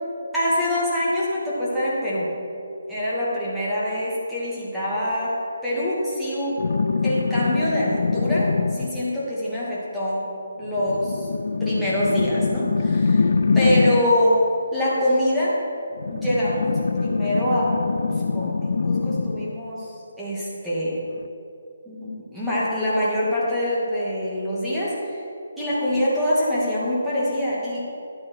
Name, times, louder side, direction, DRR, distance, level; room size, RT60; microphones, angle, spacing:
voice 1, 0.3-2.3 2.9-6.6 7.0-10.2 10.6-11.3 11.6-14.4 14.7-15.6 16.1-21.1 21.9-25.2 25.6-27.9, equal, ahead, -11 dB, 2.4 m, -25 dB
sound 1, 6.6-9.1 10.7-14.2 16.0-19.6 21.2-21.3, left 4 dB, 60° left, 0.5 m, -23 dB
11.0 x 8.7 x 4.7 m, 2.6 s
figure-of-eight pair, 160°, 0 cm